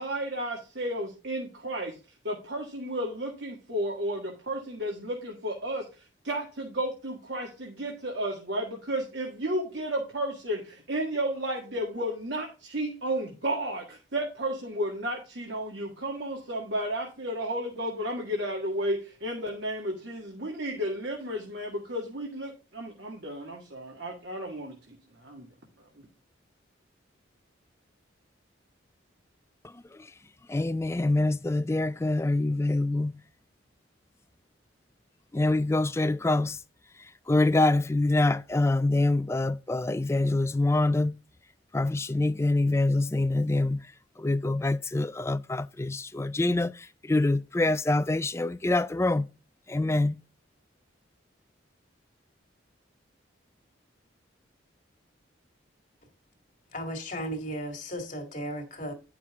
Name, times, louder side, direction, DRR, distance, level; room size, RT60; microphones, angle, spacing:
voice 1, 0.0-2.0 2.2-5.9 6.2-25.5, right 1 dB, 60° right, 1.9 m, -33 dB
voice 2, 30.5-33.1 35.3-36.6 37.3-41.2 41.7-43.8 44.2-46.7 47.1-49.2 49.7-50.2, left 2 dB, 15° left, 0.3 m, -25 dB
voice 3, 56.7-58.9, equal, 40° left, 2.0 m, -35 dB
10.5 x 6.0 x 3.6 m
head